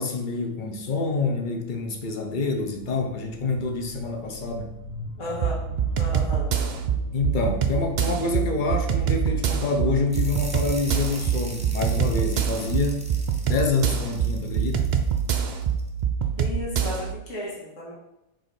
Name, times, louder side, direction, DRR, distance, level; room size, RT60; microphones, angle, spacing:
voice 1, 0.0-4.7 7.1-13.1 13.4-14.9, left 3 dB, 45° left, 3 dB, 0.9 m, -27 dB
sound 1, 0.6-12.5, equal, 90° left, 1.8 m, -43 dB
voice 2, 5.2-5.6 6.0-6.7 16.4-17.9, left 1 dB, 70° left, -5 dB, 2.1 m, -34 dB
sound 2, 5.4-17.1, right 7 dB, 65° right, 0.4 m, -25 dB
sound 3, 10.1-15.9, right 1 dB, 10° right, 0.5 m, -42 dB
4.7 x 3.8 x 5.2 m, 0.90 s
omnidirectional pair, 1.4 m